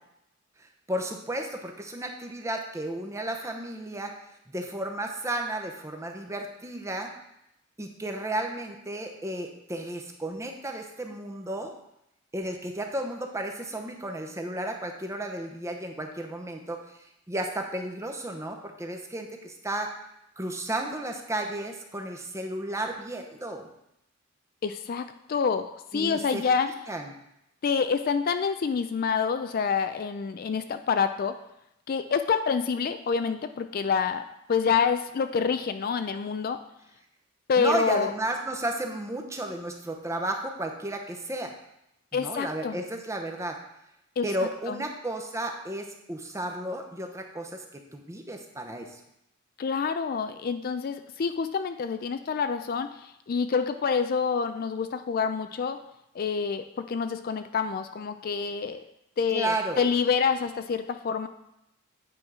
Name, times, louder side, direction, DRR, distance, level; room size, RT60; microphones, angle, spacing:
voice 1, 0.9-4.1 4.5-7.1 7.8-11.7 12.3-16.8 17.3-20.0 20.4-23.7 25.9-26.4 26.9-27.1 37.6-41.5 42.1-43.6 44.2-47.6 47.9-48.9 59.3-59.8, right 1 dB, 15° right, 3 dB, 0.8 m, -33 dB
voice 2, 24.6-26.7 27.6-31.4 31.9-36.6 37.5-38.1 42.1-42.8 44.2-44.3 44.7-44.8 49.6-55.8 56.1-58.8 59.2-61.3, left 6 dB, 45° left, 9 dB, 0.4 m, -27 dB
8.7 x 4.5 x 4.8 m, 0.83 s
head